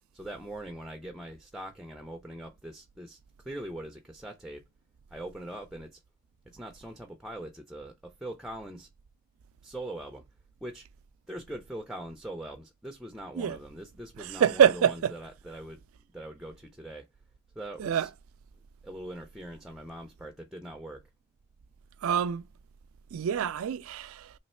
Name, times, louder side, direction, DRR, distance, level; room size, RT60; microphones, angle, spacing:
voice 1, 0.1-3.2 3.4-4.6 5.1-6.0 6.5-8.9 9.6-10.2 10.6-10.9 11.3-15.8 16.1-17.1 17.6-18.1 18.8-21.0, right 1 dB, ahead, 0.4 m, -42 dB
voice 2, 14.2-15.1 17.8-18.1 22.0-22.5 23.1-24.3, right 8 dB, 90° right, 0.4 m, -26 dB
3.2 x 2.9 x 4.2 m
head